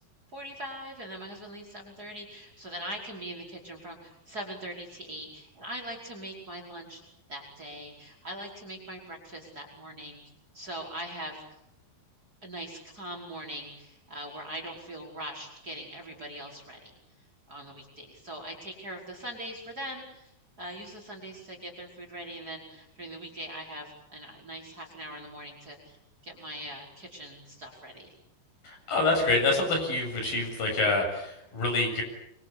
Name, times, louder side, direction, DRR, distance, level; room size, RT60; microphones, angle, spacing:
voice 1, 0.3-7.0 7.3-10.2 10.5-11.4 12.4-16.9 17.5-20.3 20.6-26.0 26.2-28.1, equal, 20° right, 2 dB, 5.5 m, -41 dB
voice 2, 28.6-32.0, left 2 dB, 60° left, 3 dB, 9.4 m, -26 dB
27.0 x 24.5 x 8.6 m, 0.77 s
omnidirectional pair, 4.7 m